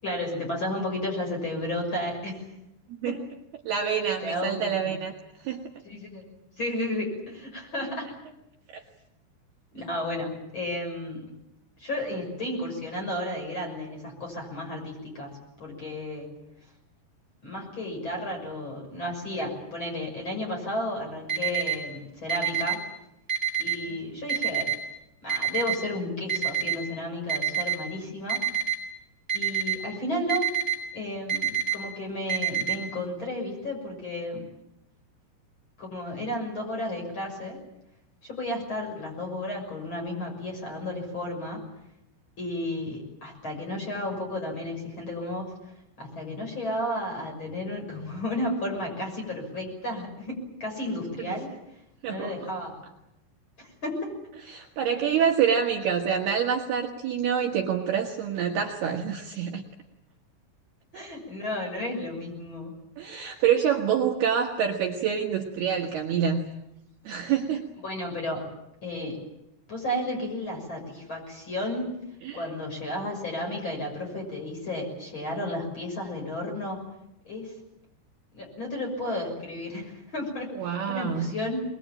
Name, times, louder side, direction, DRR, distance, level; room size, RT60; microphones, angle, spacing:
voice 1, 0.0-2.4 3.1-3.2 4.2-5.1 5.8-6.2 6.6-8.1 9.7-11.4 11.8-16.3 17.4-22.8 23.6-24.7 25.2-28.4 29.3-30.5 30.9-34.4 35.8-37.6 38.2-41.6 42.4-45.5 46.0-51.5 52.1-52.8 53.6-54.1 60.9-62.7 67.8-68.5 68.8-69.2 69.7-71.9 72.3-76.8 77.3-77.5 78.3-81.6, left 1 dB, 25° left, 0 dB, 6.8 m, -33 dB
voice 2, 3.6-5.1 5.4-5.7 8.7-8.8 51.2-51.3 52.0-52.3 54.5-59.6 60.9-61.1 63.0-66.5 67.1-67.6 72.2-72.4 80.6-81.3, right 8 dB, 65° right, 1 dB, 3.0 m, -26 dB
Alarm, 21.3-21.7 22.3-22.7 23.3-23.7 24.3-24.7 25.3-25.7 26.3-26.7 27.3-27.7 28.3-28.7 29.3-29.7 30.3-30.8 31.3-31.7 32.3-32.7, right 9 dB, 10° right, 4.6 m, -26 dB
23.5 x 21.5 x 8.9 m, 0.87 s
omnidirectional pair, 5.8 m